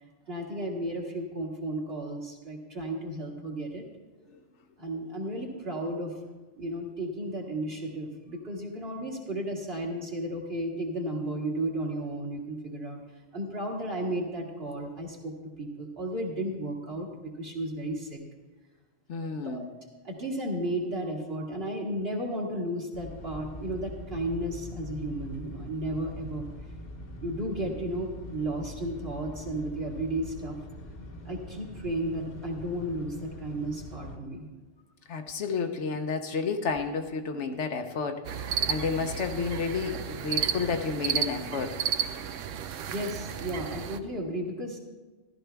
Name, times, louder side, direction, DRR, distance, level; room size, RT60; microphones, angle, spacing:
voice 1, 0.3-3.8 4.8-6.1 6.6-13.0 13.3-17.1 17.4-18.2 19.3-19.7 20.0-26.5 27.2-30.6 31.3-34.5 42.9-44.8, right 1 dB, 55° right, -2 dB, 2.1 m, -33 dB
voice 2, 19.1-19.7 35.1-38.2 38.7-41.8, left 5 dB, 70° left, 6 dB, 1.1 m, -31 dB
sound 1, 22.9-34.2, left 1 dB, 40° left, 1.1 m, -43 dB
sound 2, 38.2-44.0, right 8 dB, 80° right, 1.0 m, -32 dB
14.5 x 12.0 x 3.4 m, 1.2 s
omnidirectional pair, 1.3 m